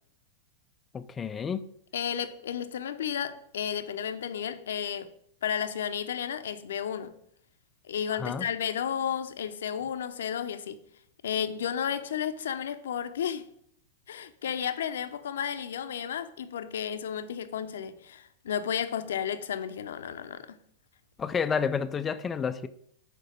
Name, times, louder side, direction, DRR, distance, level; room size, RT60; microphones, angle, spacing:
voice 1, 0.9-1.7 8.2-8.5 21.2-22.7, left 6 dB, 20° left, 0.5 m, -30 dB
voice 2, 1.9-5.1 5.4-7.1 7.9-10.8 11.2-13.5 14.1-20.6, left 8 dB, 75° left, 0.7 m, -32 dB
6.6 x 4.5 x 6.6 m
hypercardioid pair, 100°, 0 cm